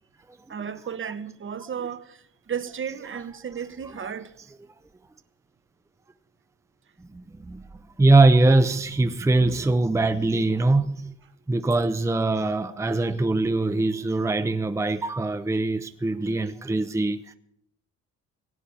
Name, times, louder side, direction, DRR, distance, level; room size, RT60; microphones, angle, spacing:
voice 1, 0.5-4.3, right 7 dB, 40° right, 1.1 m, -34 dB
voice 2, 7.1-7.6 8.0-11.1 11.5-17.3, right 2 dB, 10° right, 0.7 m, -22 dB
17.0 x 8.6 x 8.6 m
cardioid pair, 90°, 30 cm